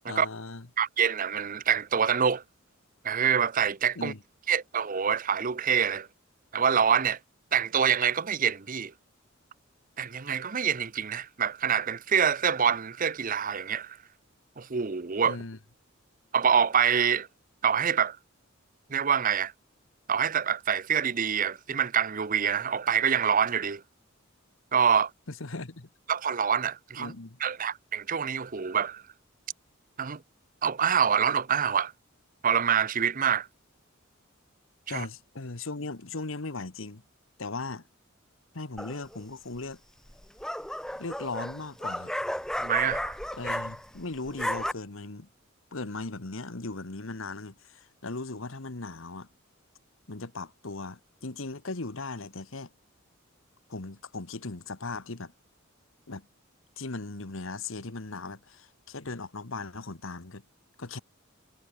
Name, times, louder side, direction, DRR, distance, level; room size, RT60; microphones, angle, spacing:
voice 1, 0.1-0.7 3.9-4.2 15.2-15.6 25.3-25.9 27.0-27.4 34.9-37.0 37.4-37.9 38.5-39.8 41.0-42.1 43.4-45.3 45.7-49.3 50.1-52.7 53.7-55.3 56.1-56.3 56.8-60.4 60.8-61.0, left 3 dB, 75° left, 1.5 m, -38 dB
voice 2, 0.8-2.4 3.0-4.1 4.5-6.1 6.5-7.2 7.5-8.9 10.0-14.0 14.6-15.4 16.3-17.3 17.6-18.2 18.9-19.5 20.1-23.8 24.7-25.1 26.1-27.1 27.4-29.0 30.0-30.2 30.6-31.9 32.4-33.5 34.9-35.1 42.6-43.2, right 7 dB, 40° right, 0.7 m, -26 dB
sound 1, 38.8-39.2 40.1-44.0 44.3-44.7, left 1 dB, 5° left, 0.7 m, -33 dB
head